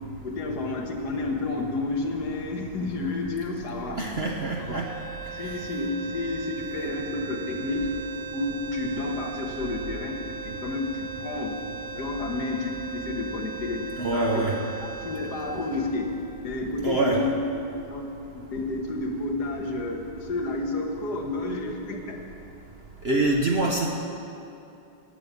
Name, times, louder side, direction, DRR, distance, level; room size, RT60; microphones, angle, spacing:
voice 1, 0.2-4.0 4.7-4.8 5.3-7.9 8.3-11.7 11.9-16.1 16.4-17.4 17.6-22.2, left 2 dB, 55° left, 1 dB, 1.7 m, -31 dB
voice 2, 4.0-4.9 14.0-14.6 16.8-17.2 23.0-23.9, right 2 dB, 60° right, 0 dB, 0.6 m, -25 dB
sound 1, 4.5-16.8, right 5 dB, 85° right, 1.7 m, -39 dB
11.0 x 7.3 x 8.2 m, 2.7 s
omnidirectional pair, 2.1 m